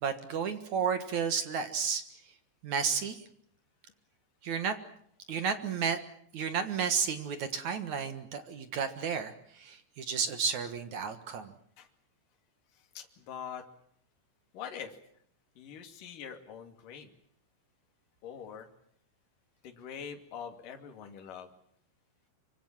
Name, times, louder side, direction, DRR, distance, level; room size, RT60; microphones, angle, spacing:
voice 1, 0.0-2.0 2.6-3.2 4.4-4.7 5.3-6.0 6.3-11.5, right 6 dB, 60° right, 9 dB, 2.2 m, -32 dB
voice 2, 13.0-13.6 14.5-15.0 15.6-17.1 18.2-18.7 19.6-21.5, left 7 dB, 55° left, 4 dB, 3.8 m, -43 dB
26.0 x 24.5 x 7.4 m, 0.66 s
omnidirectional pair, 5.2 m